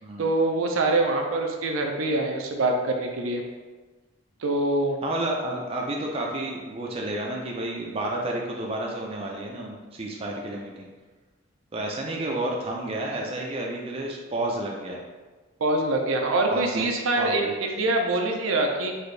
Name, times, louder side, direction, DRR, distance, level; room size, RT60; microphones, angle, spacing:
voice 1, 0.2-3.4 4.4-5.0 12.1-12.2 15.6-18.9, right 2 dB, 85° right, 2 dB, 0.5 m, -24 dB
voice 2, 5.0-10.9 11.7-15.0 16.5-16.8 17.2-17.5, right 1 dB, 30° right, -1 dB, 0.4 m, -31 dB
4.1 x 2.7 x 3.2 m, 1.3 s
head